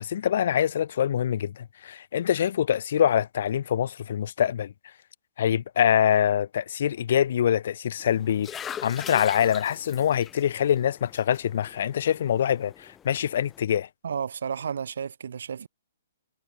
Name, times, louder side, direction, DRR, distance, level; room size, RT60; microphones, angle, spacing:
voice 1, 0.0-4.7 5.4-13.9, left 9 dB, 60° left, 0.4 m, -25 dB
sound 1, 8.0-13.6, left 9 dB, 15° left, 0.8 m, -43 dB
voice 2, 14.0-15.7, right 7 dB, 65° right, 1.7 m, -32 dB
figure-of-eight pair, 125°, 0 cm